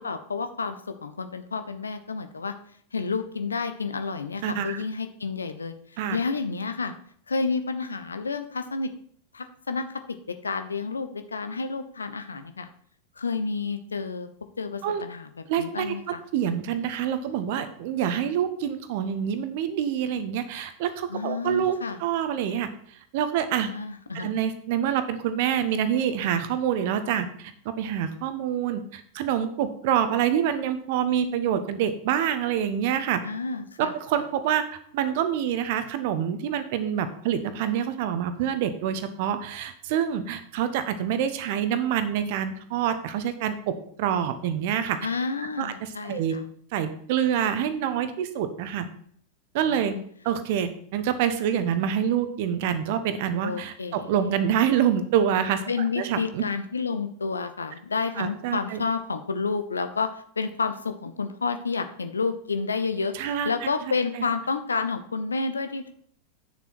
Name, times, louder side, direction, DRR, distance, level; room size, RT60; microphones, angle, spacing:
voice 1, 0.0-2.5 2.9-5.7 6.1-6.9 7.3-8.9 9.3-12.7 13.2-14.3 14.6-15.3 15.6-16.2 21.1-22.0 23.6-24.3 33.2-34.2 45.0-46.4 49.6-50.0 53.4-54.3 55.7-65.9, left 4 dB, 75° left, 9 dB, 0.8 m, -30 dB
voice 2, 4.4-4.8 6.0-6.2 14.8-15.0 15.5-22.7 23.1-23.7 24.1-33.2 33.8-34.7 34.9-45.0 45.6-46.4 46.7-48.9 49.5-49.9 50.2-55.6 56.0-56.4 58.2-58.8 63.1-63.5, right 9 dB, 50° right, 10 dB, 1.0 m, -26 dB
8.9 x 6.9 x 4.5 m, 0.62 s
figure-of-eight pair, 90°, 0 cm